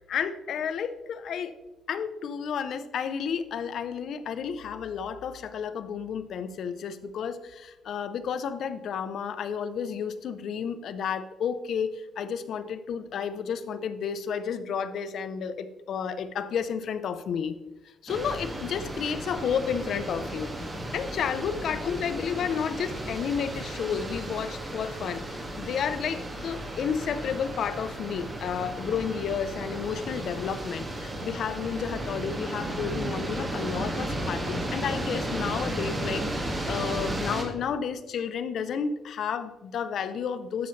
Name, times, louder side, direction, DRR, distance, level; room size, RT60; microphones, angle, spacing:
voice 1, 0.0-1.5 1.9-17.5 18.0-20.5 20.9-25.2 25.6-40.7, left 7 dB, 65° left, 12 dB, 0.7 m, -31 dB
sound 1, 18.1-37.4, right 1 dB, 25° right, 2.0 m, -34 dB
11.5 x 6.9 x 3.3 m, 1.1 s
cardioid pair, 90°, 0 cm